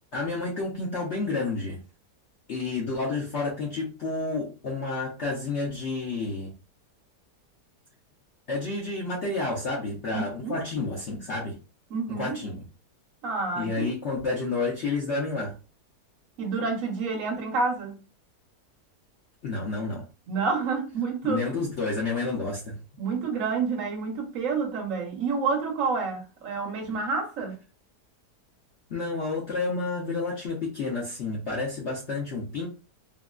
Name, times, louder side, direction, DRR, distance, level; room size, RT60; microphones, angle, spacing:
voice 1, 0.1-1.8 2.5-6.5 8.5-11.6 12.1-12.6 13.5-15.5 19.4-20.0 21.2-22.8 28.9-32.7, left 3 dB, 55° left, 0.8 m, -30 dB
voice 2, 10.1-10.6 11.9-12.4 13.2-13.9 16.4-17.9 20.3-21.5 23.0-27.6, right 4 dB, 55° right, 1.2 m, -29 dB
3.7 x 2.2 x 2.3 m
omnidirectional pair, 1.8 m